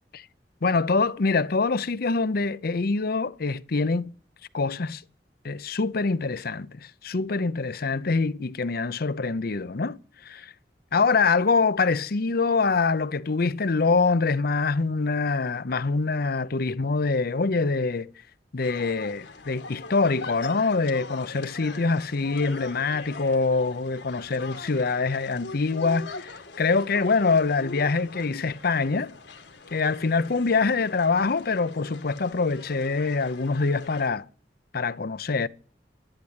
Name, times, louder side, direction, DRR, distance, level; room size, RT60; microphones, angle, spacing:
voice 1, 0.6-4.1 4.5-5.0 5.4-10.0 10.2-10.5 10.9-18.1 18.5-29.1 29.7-34.2 34.7-35.5, left 4 dB, 60° left, 0.7 m, -25 dB
sound 1, 18.6-34.1, left 3 dB, 75° left, 2.0 m, -42 dB
12.0 x 11.5 x 8.1 m
head